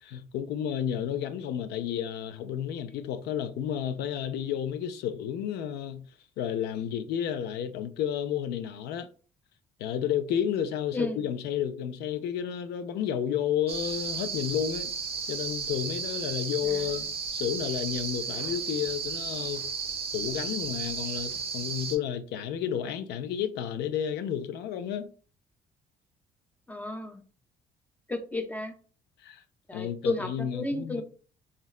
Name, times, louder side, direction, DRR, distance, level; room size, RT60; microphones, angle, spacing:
voice 1, 0.0-6.0 6.4-9.1 9.8-14.9 15.3-17.1 17.3-19.7 20.1-25.1 29.2-29.4 29.7-31.0, left 9 dB, 75° left, 0.4 m, -31 dB
sound 1, 13.7-22.0, right 5 dB, 35° right, 0.6 m, -34 dB
voice 2, 26.7-27.2 28.1-28.7 29.7-31.0, left 2 dB, 10° left, 0.5 m, -32 dB
3.9 x 2.1 x 2.3 m
cardioid pair, 110°, 17 cm